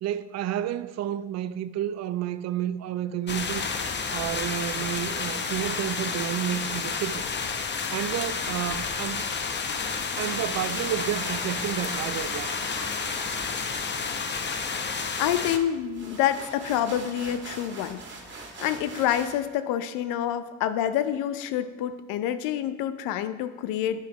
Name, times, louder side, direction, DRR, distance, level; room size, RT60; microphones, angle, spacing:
voice 1, 0.0-3.7 4.1-7.2 7.9-9.3 10.2-12.5, right 11 dB, 45° right, 0.5 m, -30 dB
sound 1, 3.3-15.6, left 5 dB, 30° left, 0.9 m, -30 dB
sound 2, 9.8-19.4, right 3 dB, 30° right, 2.3 m, -43 dB
voice 2, 15.2-18.0 18.6-24.1, left 10 dB, 65° left, 0.7 m, -27 dB
11.0 x 9.2 x 3.0 m
hypercardioid pair, 65°, 36 cm